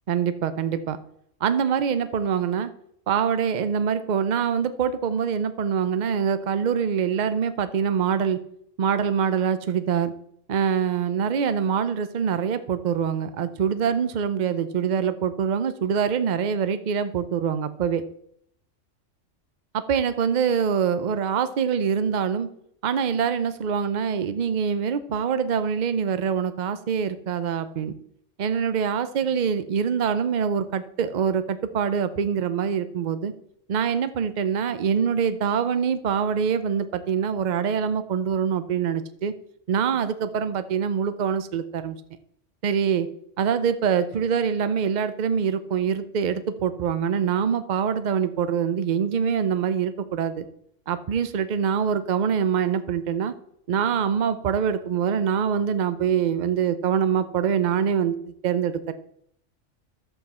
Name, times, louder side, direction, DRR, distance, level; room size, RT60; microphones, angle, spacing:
voice 1, 0.1-1.0 1.4-2.7 3.1-8.4 8.8-10.1 10.5-18.0 19.7-22.5 22.8-27.9 28.4-33.3 33.7-39.3 39.7-42.0 42.6-43.1 43.4-50.4 50.9-53.3 53.7-58.9, right 7 dB, 45° right, 12 dB, 0.6 m, -24 dB
11.5 x 8.0 x 4.3 m, 0.71 s
omnidirectional pair, 1.3 m